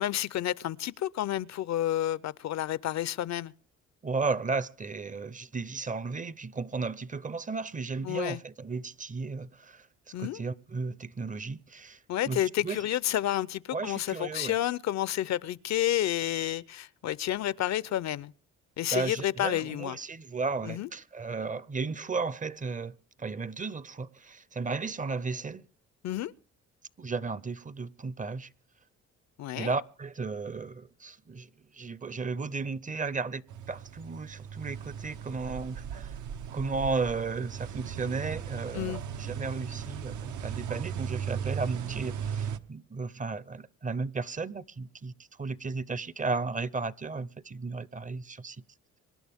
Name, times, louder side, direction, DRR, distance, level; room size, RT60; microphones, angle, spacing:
voice 1, 0.0-3.5 8.0-8.4 10.1-10.4 12.1-18.3 18.8-20.0 20.6-20.9 26.0-26.3 29.4-29.7 38.7-39.0, left 12 dB, 65° left, 0.6 m, -30 dB
voice 2, 4.0-9.9 10.2-12.0 12.3-12.8 13.7-14.6 18.9-25.6 27.0-28.5 29.5-36.2 36.5-45.1 45.4-48.6, right 4 dB, 25° right, 0.7 m, -34 dB
sound 1, 33.5-42.6, right 8 dB, 75° right, 1.0 m, -37 dB
25.5 x 11.0 x 3.5 m
cardioid pair, 90°, 30 cm